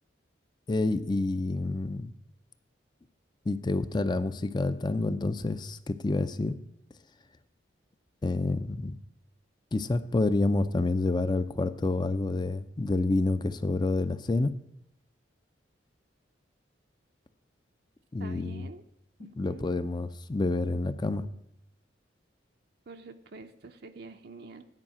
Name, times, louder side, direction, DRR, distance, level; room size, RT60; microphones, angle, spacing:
voice 1, 0.7-2.1 3.5-6.6 8.2-9.0 9.7-14.5 18.1-18.7 19.4-21.3, left 2 dB, 25° left, 13 dB, 0.4 m, -28 dB
voice 2, 18.2-18.8 19.2-19.6 22.9-24.6, right 3 dB, 55° right, 6 dB, 0.6 m, -46 dB
9.8 x 4.9 x 7.4 m, 0.81 s
head